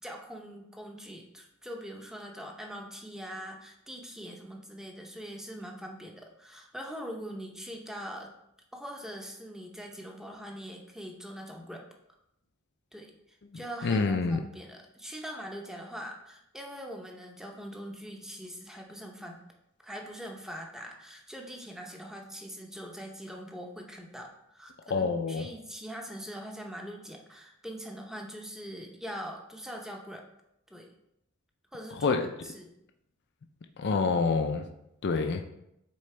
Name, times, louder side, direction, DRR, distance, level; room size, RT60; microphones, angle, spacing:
voice 1, 0.0-8.3 8.7-11.9 12.9-19.4 19.8-30.2 30.7-30.9 31.7-32.2 32.4-32.7, equal, ahead, 1 dB, 0.7 m, -42 dB
voice 2, 13.5-14.4 24.9-25.5 32.0-32.2 33.8-34.7 35.0-35.5, left 4 dB, 50° left, 5 dB, 0.5 m, -27 dB
8.5 x 3.8 x 3.3 m, 0.81 s
head